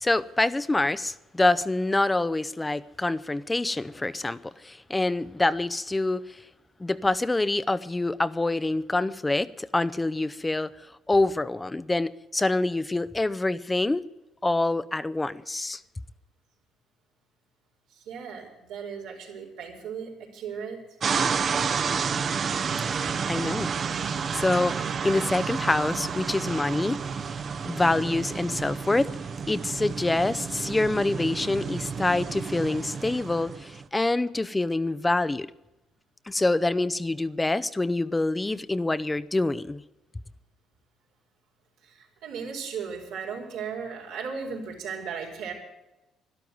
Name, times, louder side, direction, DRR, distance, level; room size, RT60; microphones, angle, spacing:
voice 1, 0.0-6.4 6.8-10.7 11.1-14.0 14.4-15.8 23.3-23.7 24.0-27.0 27.7-29.1 29.5-35.5 36.3-39.8, left 2 dB, 15° left, 0.6 m, -26 dB
voice 2, 17.9-20.8 41.8-45.5, right 6 dB, 90° right, 4.7 m, -36 dB
sound 1, 21.0-33.8, right 6 dB, 45° right, 0.8 m, -30 dB
12.0 x 12.0 x 9.3 m
cardioid pair, 90°, 0 cm